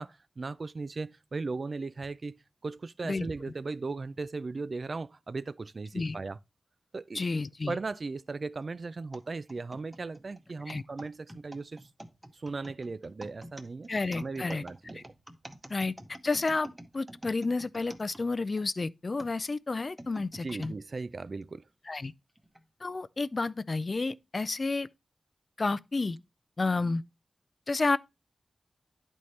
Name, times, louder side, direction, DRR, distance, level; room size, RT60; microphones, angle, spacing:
voice 1, 0.0-6.4 6.9-7.2 7.7-11.9 12.3-15.1 20.4-21.6, right 3 dB, 50° right, 0.3 m, -37 dB
voice 2, 7.1-7.8 10.7-10.8 13.9-14.6 15.7-15.9 16.2-16.7 16.9-20.7 21.9-22.1 22.8-24.9 25.6-26.2 26.6-27.0 27.7-28.0, left 3 dB, 45° left, 0.3 m, -30 dB
sound 1, 9.1-18.7 19.2-20.8 21.4-21.5 22.4-22.6, right 1 dB, 10° right, 0.9 m, -48 dB
11.0 x 4.2 x 3.2 m
wide cardioid pair, 100°, 0 cm